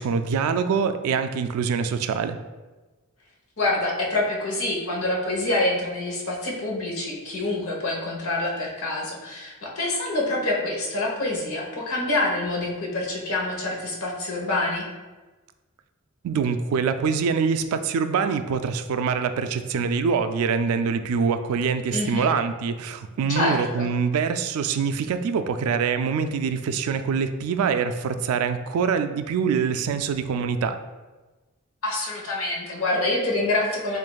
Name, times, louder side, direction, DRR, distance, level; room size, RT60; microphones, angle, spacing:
voice 1, 0.0-2.4 16.2-30.8, right 6 dB, 85° right, 10 dB, 0.3 m, -24 dB
voice 2, 3.6-14.9 21.9-22.3 23.3-23.9 31.8-34.0, left 2 dB, 80° left, -2 dB, 1.0 m, -26 dB
7.2 x 2.5 x 2.3 m, 1.2 s
head